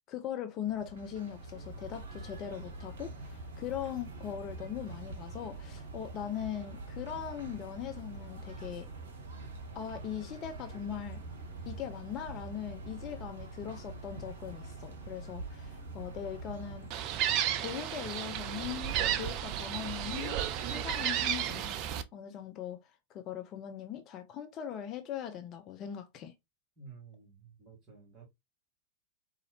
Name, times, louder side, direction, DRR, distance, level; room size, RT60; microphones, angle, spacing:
voice 1, 0.1-8.9 9.7-11.2 11.7-16.9 17.6-22.8 23.1-26.3, left 9 dB, 35° left, 0.5 m, -40 dB
sound 1, 0.6-16.9, right 2 dB, 60° right, 0.9 m, -44 dB
Gull seagull, 16.9-22.0, right 10 dB, 40° right, 0.4 m, -33 dB
voice 2, 26.8-28.3, right 5 dB, 25° right, 1.9 m, -52 dB
4.0 x 2.5 x 2.8 m
figure-of-eight pair, 90°, 0 cm